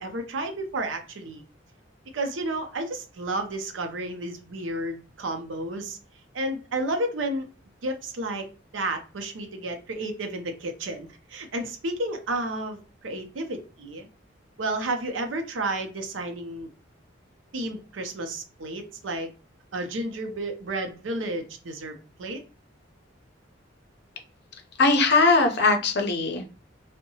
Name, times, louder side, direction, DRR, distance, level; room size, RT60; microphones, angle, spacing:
voice 1, 0.0-1.4 2.1-6.0 6.3-7.5 7.8-8.5 8.7-14.1 14.6-16.7 17.5-19.3 19.7-22.4, right 2 dB, 80° right, 5 dB, 0.6 m, -31 dB
voice 2, 24.8-26.5, left 3 dB, 60° left, 5 dB, 0.6 m, -20 dB
2.7 x 2.1 x 2.7 m, 0.35 s
head